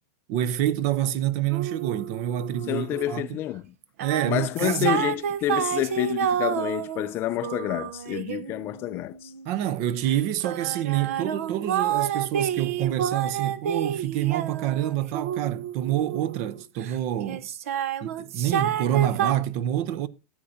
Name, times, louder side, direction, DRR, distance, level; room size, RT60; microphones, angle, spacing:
voice 1, 0.3-3.4 4.0-5.0 9.4-17.5 18.0-20.1, right 12 dB, 40° right, 0.6 m, -27 dB
sound 1, 1.5-3.2 3.8-9.5 10.0-16.9 17.3-19.3, right 9 dB, 70° right, 0.8 m, -29 dB
voice 2, 2.7-3.7 4.3-9.3, left 14 dB, 30° left, 0.4 m, -28 dB
14.0 x 8.7 x 2.6 m
supercardioid pair, 150°, 8 cm